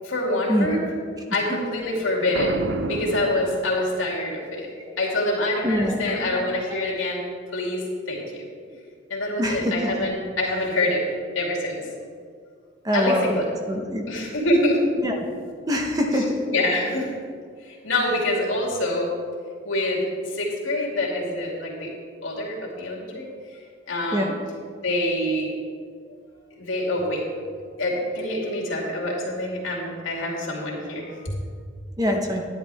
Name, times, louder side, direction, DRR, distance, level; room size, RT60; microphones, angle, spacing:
voice 1, 0.0-0.8 1.3-4.7 5.0-7.2 7.5-8.4 9.1-11.0 11.3-11.8 12.9-13.4 14.1-14.8 16.1-17.1 17.6-19.1 19.6-21.9 22.2-23.3 23.9-24.3 24.8-25.5 26.6-27.2 27.8-31.3, left 1 dB, 75° left, -3 dB, 2.6 m, -26 dB
Boom, 2.3-4.2, right 3 dB, 60° right, 0.5 m, -30 dB
voice 2, 5.6-6.4 9.4-9.9 12.8-13.3 13.7-14.1 15.0-15.2 15.7-16.4 24.1-24.3 32.0-32.5, equal, 20° right, 2 dB, 0.9 m, -24 dB
11.0 x 10.5 x 3.5 m, 2.1 s
head